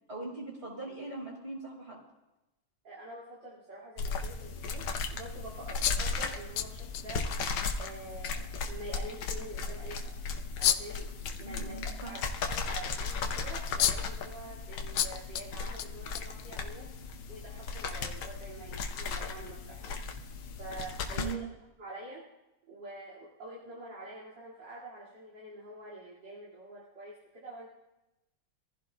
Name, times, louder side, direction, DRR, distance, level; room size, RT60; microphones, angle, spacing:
voice 1, 0.1-2.0 11.4-12.1 21.2-21.5, right 3 dB, 30° right, -5 dB, 4.6 m, -40 dB
voice 2, 2.8-7.5 7.8-10.1 10.6-21.4 21.8-22.3 22.7-27.7, right 1 dB, 60° right, -8 dB, 3.1 m, -46 dB
sound 1, 4.0-21.3, left 4 dB, 85° left, 1.8 m, -36 dB
sound 2, 5.8-7.4 7.7-7.8 8.2-8.3 10.6-11.0 13.3-13.4 13.8-14.2 15.0-15.5 15.8-16.8, left 11 dB, 70° left, 0.9 m, -30 dB
24.5 x 15.0 x 2.4 m, 0.97 s
omnidirectional pair, 2.2 m